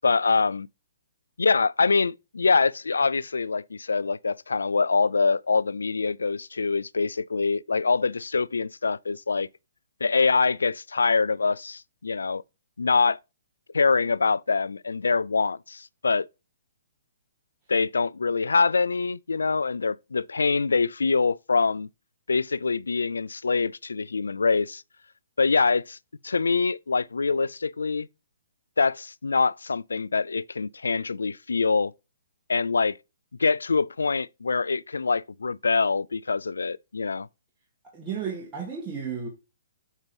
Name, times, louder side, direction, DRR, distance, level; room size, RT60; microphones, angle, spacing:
voice 1, 0.0-0.7 1.4-9.5 10.0-12.4 12.8-13.2 13.7-16.3 17.7-21.9 22.3-24.8 25.4-26.0 26.2-28.1 28.8-31.9 32.5-33.0 33.4-37.3, left 4 dB, 90° left, 0.3 m, -24 dB
voice 2, 37.9-39.3, right 6 dB, 20° right, 1.8 m, -33 dB
8.0 x 3.0 x 5.3 m
hypercardioid pair, 145°, 0 cm